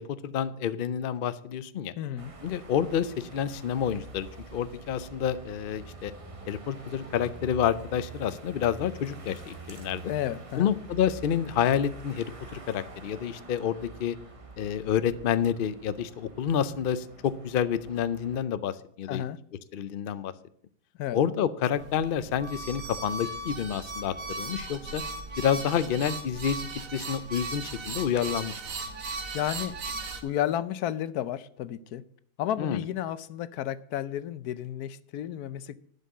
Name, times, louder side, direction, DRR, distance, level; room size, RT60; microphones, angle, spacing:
voice 1, 0.0-1.9 2.4-6.1 6.5-10.0 10.6-14.2 14.6-19.2 19.7-20.3 21.1-25.0 25.4-26.6 26.9-28.6 32.6-32.8, left 9 dB, 55° left, 0.6 m, -29 dB
voice 2, 2.0-2.3 10.1-10.7 19.1-19.4 21.0-21.2 29.3-29.7 30.2-32.0 32.4-35.8, left 11 dB, 85° left, 1.2 m, -32 dB
sound 1, 2.2-18.4, right 3 dB, 25° right, 1.0 m, -46 dB
sound 2, 21.8-30.2, right 3 dB, 65° right, 1.7 m, -37 dB
11.5 x 5.5 x 8.3 m
omnidirectional pair, 1.6 m